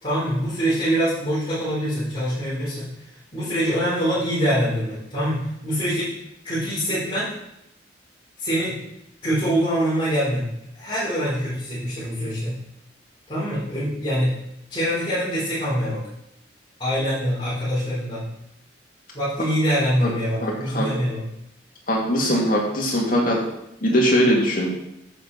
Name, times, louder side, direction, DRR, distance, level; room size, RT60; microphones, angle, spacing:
voice 1, 0.0-2.9 3.3-6.1 6.4-7.3 8.4-8.8 9.2-12.6 13.3-14.3 14.7-16.0 16.8-18.2 19.1-21.2, equal, 25° left, -11 dB, 4.2 m, -24 dB
voice 2, 20.4-20.9 21.9-23.4 23.8-24.7, equal, 45° left, -2 dB, 2.5 m, -21 dB
9.9 x 7.9 x 4.2 m, 0.81 s
head